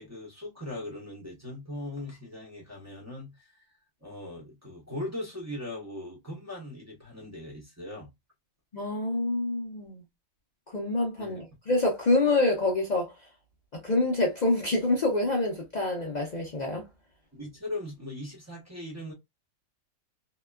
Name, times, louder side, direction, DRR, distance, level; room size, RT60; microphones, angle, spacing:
voice 1, 0.0-3.5 4.0-8.1 11.2-11.3 17.3-19.1, left 1 dB, 15° right, 0.7 m, -39 dB
voice 2, 8.7-10.0 10.7-13.1 13.7-16.8, left 2 dB, 60° left, 0.4 m, -26 dB
2.8 x 2.2 x 2.2 m
omnidirectional pair, 1.6 m